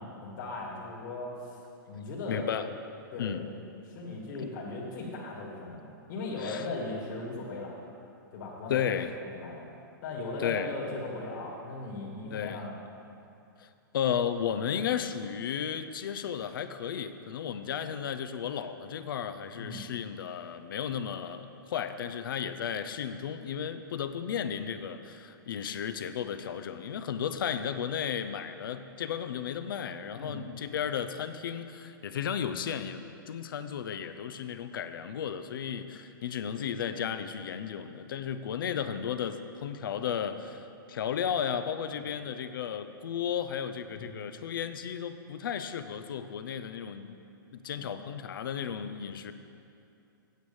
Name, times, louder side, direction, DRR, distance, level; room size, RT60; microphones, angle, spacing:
voice 1, 0.2-1.6 1.9-2.5 3.1-3.4 3.9-7.7 8.3-9.0 9.2-9.7 10.0-12.8 19.6-19.8 30.1-30.4 41.9-42.1 44.0-44.1, left 2 dB, 55° left, -4 dB, 2.3 m, -38 dB
voice 2, 2.3-2.7 3.2-3.4 4.4-4.5 6.4-6.7 8.7-9.1 10.4-10.7 12.3-12.6 13.6-13.7 13.9-47.2 47.5-49.3, left 8 dB, 70° left, 10 dB, 0.6 m, -34 dB
9.1 x 6.5 x 7.1 m, 2.6 s
hypercardioid pair, 145°, 12 cm